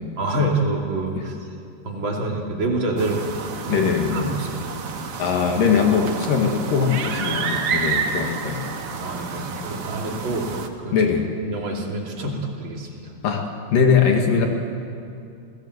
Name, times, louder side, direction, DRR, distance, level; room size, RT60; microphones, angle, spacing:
voice 1, 0.2-1.4 1.8-3.2 3.6-4.8 9.0-10.5 10.8-10.9 11.4-12.9, right 2 dB, 35° right, -1 dB, 3.4 m, -26 dB
sound 1, 3.0-10.7, right 5 dB, 55° right, 1.8 m, -29 dB
voice 2, 3.7-4.3 5.2-8.7 10.9-11.2 13.2-14.5, left 6 dB, 75° left, 2 dB, 3.5 m, -21 dB
29.0 x 17.0 x 8.0 m, 2.5 s
omnidirectional pair, 4.0 m